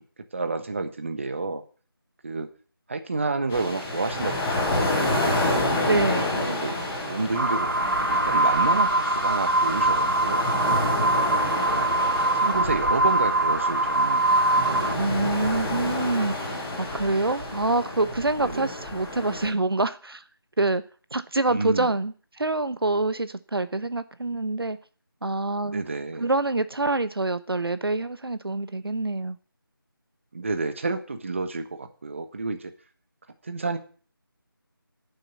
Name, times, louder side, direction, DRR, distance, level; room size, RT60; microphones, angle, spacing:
voice 1, 0.3-1.6 2.2-2.5 2.9-5.2 6.4-10.4 11.5-11.9 12.3-14.2 14.5-15.3 18.4-18.7 21.5-21.9 25.6-26.3 30.3-32.7 33.4-33.8, right 3 dB, 30° right, 1.2 m, -30 dB
sound 1, 3.5-19.5, left 1 dB, 5° left, 0.6 m, -29 dB
voice 2, 5.8-6.2 14.9-16.5 16.8-20.2 20.6-20.8 21.1-24.8 25.2-25.8 26.2-29.4, right 2 dB, 75° right, 1.0 m, -26 dB
sound 2, 7.3-14.9, right 2 dB, 55° right, 1.8 m, -23 dB
10.0 x 7.0 x 8.3 m
figure-of-eight pair, 170°, 12 cm